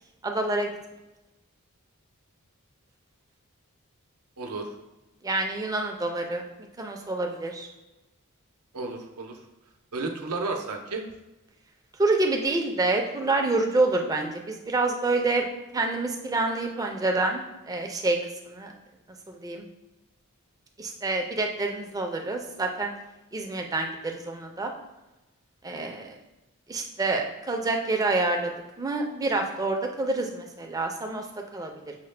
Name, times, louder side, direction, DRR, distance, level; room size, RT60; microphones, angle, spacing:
voice 1, 0.2-0.7 5.2-6.4 6.8-7.7 12.0-15.5 15.7-18.2 18.4-18.7 19.3-19.6 20.8-22.9 23.3-24.7 25.6-26.2 26.7-28.5 28.8-31.2 31.5-31.7, right 2 dB, 15° right, 2 dB, 0.4 m, -27 dB
voice 2, 4.4-4.7 8.7-9.4 9.9-11.0 25.7-26.0, right 3 dB, 80° right, 3 dB, 0.6 m, -33 dB
5.7 x 2.1 x 3.2 m, 1.0 s
head